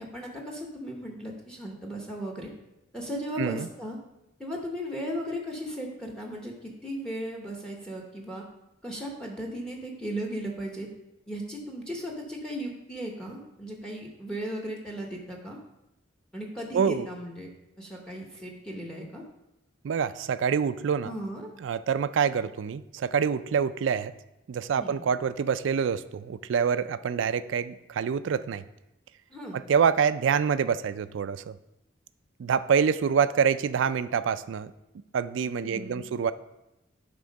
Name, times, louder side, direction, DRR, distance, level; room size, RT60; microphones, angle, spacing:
voice 1, 0.0-2.5 2.9-4.0 4.4-8.4 8.8-10.9 11.3-15.6 16.3-17.5 17.8-19.2 21.0-21.5 24.7-25.0 29.3-29.6 35.5-36.1, equal, 5° left, 0 dB, 0.9 m, -36 dB
voice 2, 16.7-17.1 19.8-21.1 21.6-24.1 24.5-28.6 29.5-31.5 32.4-34.7 35.1-36.3, right 6 dB, 70° right, 14 dB, 0.3 m, -26 dB
9.3 x 3.7 x 5.2 m, 0.91 s
head